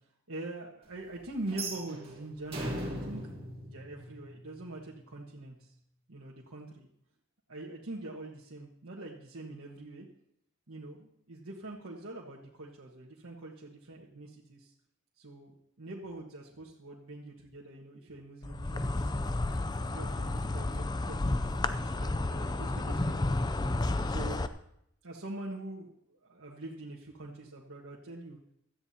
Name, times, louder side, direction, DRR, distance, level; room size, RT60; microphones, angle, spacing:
voice 1, 0.3-3.2 3.6-5.7 6.1-6.9 7.5-10.1 10.7-14.7 15.2-19.3 19.8-23.7 24.0-24.5 25.0-28.4, right 2 dB, 80° right, -4 dB, 1.5 m, -44 dB
sound 1, 1.5-4.6, right 1 dB, 30° right, 2.9 m, -39 dB
Insect, 18.4-24.5, left 2 dB, 20° left, 0.5 m, -31 dB
17.0 x 13.0 x 2.9 m, 0.75 s
head